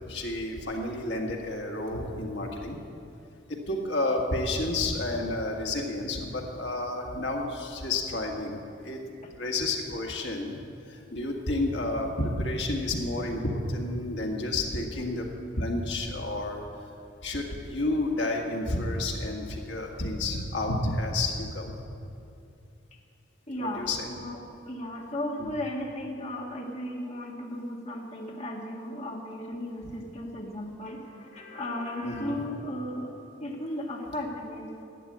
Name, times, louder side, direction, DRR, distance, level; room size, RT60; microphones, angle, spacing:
voice 1, 0.1-2.8 3.5-9.0 9.3-10.6 10.9-15.3 15.6-16.6 17.2-21.7 23.6-24.0 25.4-25.6 32.0-32.4, left 2 dB, 65° left, 0 dB, 1.9 m, -30 dB
voice 2, 23.5-24.4 24.7-33.1 33.4-34.8, left 1 dB, 35° left, -1 dB, 1.9 m, -35 dB
11.5 x 9.0 x 8.7 m, 2.6 s
head